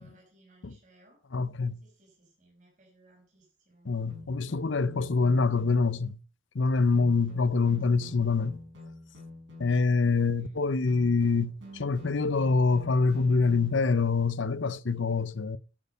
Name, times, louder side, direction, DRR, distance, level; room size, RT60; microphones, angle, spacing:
voice 1, 0.0-1.2 1.8-3.9 7.6-7.8 10.3-10.6, right 1 dB, 40° right, 5.5 m, -61 dB
voice 2, 1.3-1.8 3.9-6.2 6.5-8.6 9.6-15.6, left 4 dB, 65° left, 0.6 m, -25 dB
sound 1, 4.1-6.0 6.9-10.0 10.9-14.0, left 2 dB, 65° right, 5.8 m, -48 dB
12.5 x 8.4 x 5.4 m
head